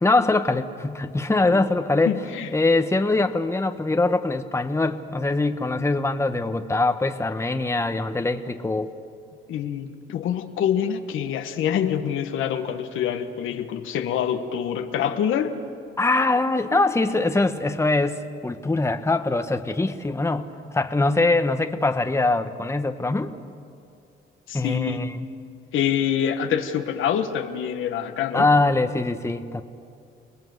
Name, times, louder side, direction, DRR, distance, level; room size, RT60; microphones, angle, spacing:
voice 1, 0.0-2.2 2.5-8.9 16.0-23.4 24.5-25.2 28.3-29.6, left 2 dB, 15° left, 7 dB, 1.3 m, -23 dB
voice 2, 2.0-2.5 9.5-15.5 24.5-25.0 25.7-28.5, left 9 dB, 80° left, 6 dB, 1.6 m, -26 dB
29.5 x 19.5 x 8.1 m, 2.5 s
cardioid pair, 90°, 20 cm